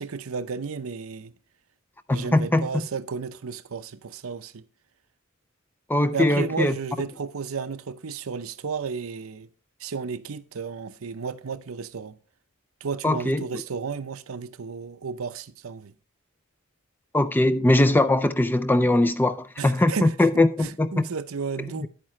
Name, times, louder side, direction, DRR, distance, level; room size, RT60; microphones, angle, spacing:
voice 1, 0.0-1.3 2.1-4.6 6.1-9.5 9.8-12.2 12.8-15.9 19.6-20.1 20.6-21.9, right 5 dB, 85° right, 0.7 m, -33 dB
voice 2, 2.1-2.7 5.9-6.7 13.0-13.5 17.1-21.1 21.8-21.9, left 1 dB, 10° left, 0.4 m, -21 dB
10.5 x 8.8 x 3.1 m
head